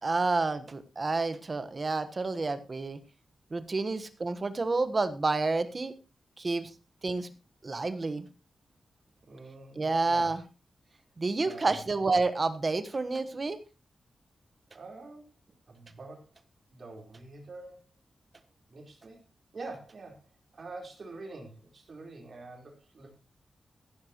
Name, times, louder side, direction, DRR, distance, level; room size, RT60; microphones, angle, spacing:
voice 1, 0.0-3.0 3.5-5.9 6.4-6.7 7.0-7.3 7.6-8.3 9.7-10.4 11.2-13.6, right 3 dB, 30° right, 11 dB, 1.3 m, -29 dB
voice 2, 9.2-10.3 11.4-11.8 14.7-15.3 15.7-16.3 16.7-17.8 18.7-19.2 19.5-20.3 20.5-23.1, right 3 dB, 50° right, 2 dB, 4.3 m, -46 dB
15.5 x 11.5 x 3.1 m, 0.30 s
wide cardioid pair, 150°, 0 cm